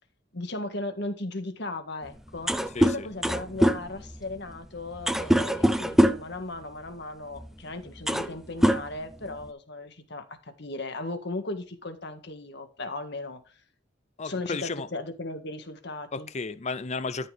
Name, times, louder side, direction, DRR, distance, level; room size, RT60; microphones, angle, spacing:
voice 1, 0.3-13.6 14.2-16.3, left 2 dB, 65° left, 1.8 m, -37 dB
sound 1, 2.1-2.2 2.3-6.4 7.4-7.5 7.9-8.4 8.6-9.5, equal, ahead, 0.6 m, -24 dB
voice 2, 2.7-3.1 14.2-14.9 16.1-17.3, left 4 dB, 35° left, 0.7 m, -33 dB
13.0 x 6.1 x 3.5 m
head